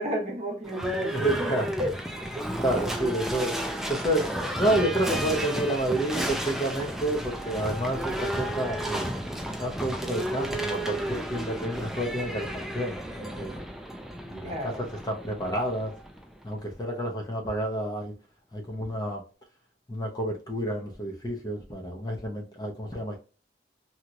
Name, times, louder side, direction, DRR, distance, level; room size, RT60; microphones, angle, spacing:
voice 1, 0.0-1.5 1.8-1.9 2.4-2.5 14.4-14.8, equal, 40° right, 0.9 m, -31 dB
Livestock farm animals working animals / Bell, 0.6-16.5, right 1 dB, ahead, 0.4 m, -33 dB
voice 2, 1.0-1.7 2.6-9.1 9.4-13.5 14.2-15.9 16.4-18.1 18.5-19.2 19.9-23.2, right 1 dB, 25° left, 0.7 m, -30 dB
2.9 x 2.8 x 2.5 m
head